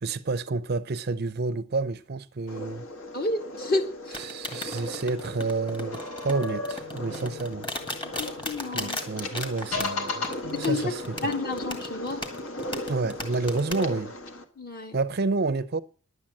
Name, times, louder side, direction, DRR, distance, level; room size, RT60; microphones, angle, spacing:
voice 1, 0.0-2.8 4.1-7.7 8.7-10.3 10.6-11.2 12.9-14.1 14.9-15.8, right 3 dB, 45° right, 0.5 m, -29 dB
sound 1, 2.5-14.4, left 1 dB, 65° left, 1.7 m, -38 dB
voice 2, 3.1-4.2 8.2-9.0 10.5-10.9 11.2-12.2 14.6-14.9, left 2 dB, 40° left, 1.9 m, -30 dB
sound 2, 4.1-13.8, left 1 dB, 20° left, 1.9 m, -35 dB
sound 3, 5.9-8.7 9.4-11.3, left 3 dB, 85° left, 4.5 m, -35 dB
11.0 x 8.6 x 7.5 m
head